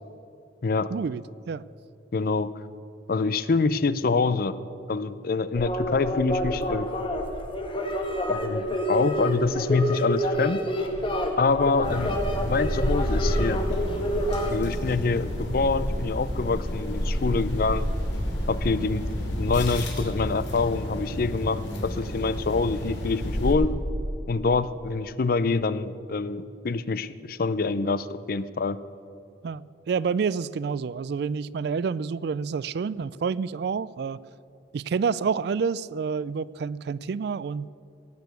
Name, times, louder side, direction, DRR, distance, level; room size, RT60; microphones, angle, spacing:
voice 1, 0.9-1.6 29.4-34.2 34.7-37.7, right 5 dB, 60° right, 20 dB, 0.3 m, -28 dB
voice 2, 2.1-2.5 3.1-4.6 4.9-6.9 8.3-10.6 11.4-13.6 14.5-17.9 18.5-19.1 19.4-23.7 24.3-28.8, left 4 dB, 50° left, 15 dB, 0.5 m, -26 dB
sound 1, 5.5-14.5, equal, 30° left, 1.3 m, -28 dB
sound 2, 11.8-23.5, equal, 75° left, 2.9 m, -29 dB
17.5 x 6.9 x 8.1 m, 2.6 s
head